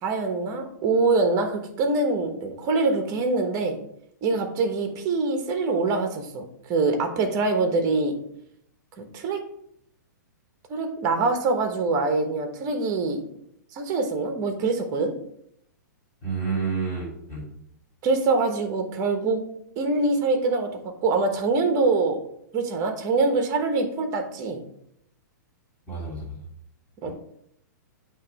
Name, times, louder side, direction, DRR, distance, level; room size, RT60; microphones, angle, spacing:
voice 1, 0.0-3.8 4.2-8.1 9.0-9.4 10.7-13.2 13.7-15.1 18.0-19.4 19.8-20.7 21.0-22.2 22.5-24.6 27.0-27.1, right 3 dB, 30° right, 6 dB, 1.1 m, -24 dB
voice 2, 16.2-17.5 25.9-26.3 27.1-27.2, right 5 dB, 15° left, -4 dB, 2.9 m, -29 dB
8.3 x 3.0 x 4.7 m, 0.72 s
hypercardioid pair, 135°, 10 cm